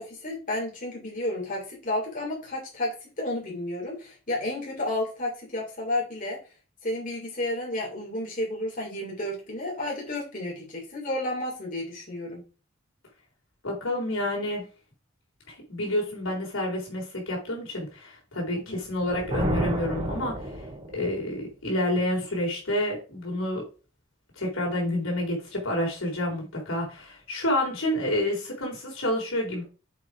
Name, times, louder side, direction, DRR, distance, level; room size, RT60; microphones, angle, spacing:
voice 1, 0.0-6.4 6.8-12.4 18.5-18.8, left 1 dB, 40° left, -3 dB, 3.6 m, -32 dB
voice 2, 13.6-14.6 15.5-20.7 20.9-23.6 24.4-29.6, left 1 dB, 85° left, -2 dB, 3.8 m, -29 dB
Thunder, 18.8-21.2, right 1 dB, 30° right, 2.7 m, -31 dB
7.4 x 4.9 x 4.8 m, 0.35 s
head